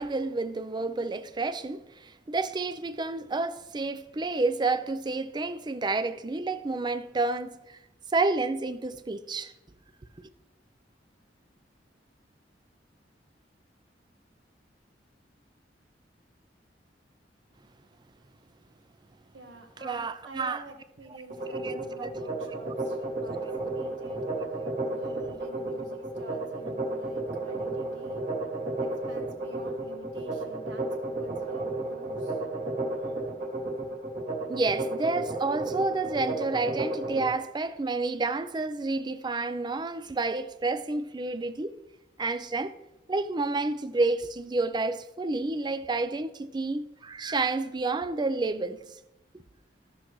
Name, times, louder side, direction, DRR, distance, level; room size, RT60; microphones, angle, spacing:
voice 1, 0.0-7.8 8.1-9.5 10.2-10.3 19.8-20.6 21.5-22.1 34.5-41.8 42.2-42.7 43.1-48.8, right 3 dB, 25° right, 0.4 m, -30 dB
voice 2, 19.3-24.2 24.9-28.2 28.8-32.4, right 2 dB, 85° right, 1.5 m, -49 dB
sound 1, 21.3-37.3, right 2 dB, 45° right, 2.3 m, -33 dB
14.5 x 6.0 x 3.1 m
head